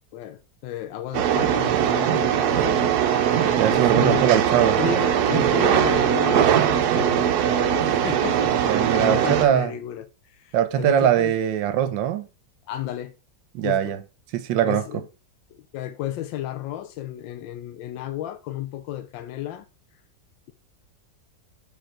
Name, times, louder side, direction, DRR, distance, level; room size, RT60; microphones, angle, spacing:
voice 1, 0.1-2.9 3.7-11.3 12.7-13.1 13.6-14.0 14.6-15.0 15.5-19.7, left 12 dB, 90° left, 1.3 m, -33 dB
sound 1, 1.1-9.5, right 9 dB, 70° right, 1.1 m, -21 dB
Electric guitar, 3.1-6.7, left 3 dB, 5° left, 1.3 m, -46 dB
voice 2, 3.6-4.8 8.7-9.7 10.5-12.3 13.5-14.0 14.3-14.8, right 10 dB, 85° right, 1.4 m, -21 dB
7.2 x 3.6 x 4.3 m
omnidirectional pair, 2.0 m